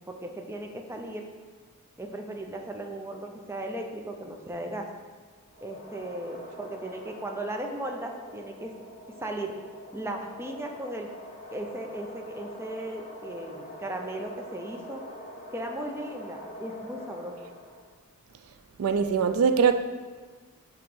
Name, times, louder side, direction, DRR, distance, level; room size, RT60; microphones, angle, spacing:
voice 1, 0.1-1.3 2.0-4.9 5.6-8.7 9.2-9.5 9.9-11.1 11.5-15.0 15.5-17.3, right 1 dB, 10° right, 3 dB, 0.5 m, -36 dB
sound 1, 5.5-17.9, left 1 dB, 35° left, 1.0 m, -44 dB
voice 2, 18.8-19.7, right 6 dB, 70° right, 9 dB, 0.4 m, -22 dB
7.7 x 3.0 x 5.3 m, 1.4 s
head